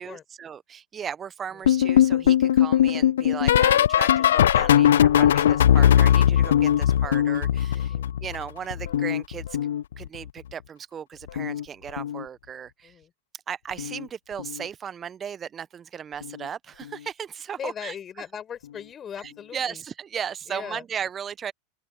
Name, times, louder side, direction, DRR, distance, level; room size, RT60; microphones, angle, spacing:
voice 1, 0.0-9.6 10.0-13.0 13.5-18.0 19.2-21.5, right 8 dB, 30° right, 1.0 m, -36 dB
sound 1, 1.6-8.4 8.7-10.3 11.3-11.6 11.9-12.2 13.8-14.0 14.4-14.6 16.2-16.3, left 10 dB, 75° left, 0.5 m, -20 dB
voice 2, 7.7-8.1 12.8-13.1 17.6-19.8 20.5-20.8, left 8 dB, 30° left, 5.1 m, -39 dB
open air
hypercardioid pair, 95°, 0 cm